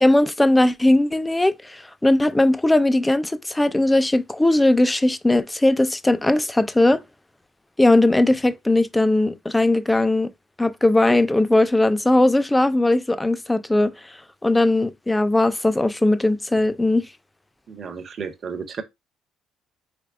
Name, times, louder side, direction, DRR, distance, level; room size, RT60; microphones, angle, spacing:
voice 1, 0.0-7.0 7.8-10.3 10.6-13.9 14.4-17.0, left 2 dB, 10° left, 0.3 m, -19 dB
voice 2, 17.7-18.8, right 6 dB, 40° right, 0.6 m, -33 dB
3.4 x 3.1 x 2.4 m
cardioid pair, 100°, 0 cm